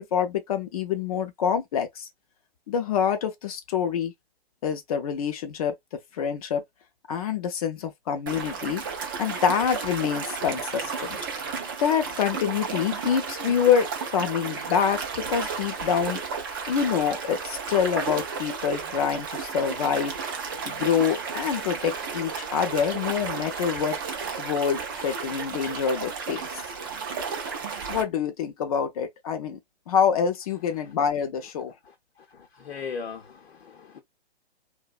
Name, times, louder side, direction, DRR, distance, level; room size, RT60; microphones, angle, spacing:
voice 1, 0.0-2.1 2.7-4.1 4.6-5.7 6.1-6.6 7.1-8.8 9.2-11.2 11.8-16.2 16.7-20.2 20.7-24.0 24.4-26.5 27.9-29.6 29.9-31.7, left 7 dB, 35° left, 0.5 m, -26 dB
sound 1, 8.3-28.0, right 5 dB, 25° right, 0.3 m, -33 dB
voice 2, 32.3-34.0, left 5 dB, 80° left, 0.7 m, -38 dB
2.5 x 2.1 x 2.3 m
hypercardioid pair, 135°, 31 cm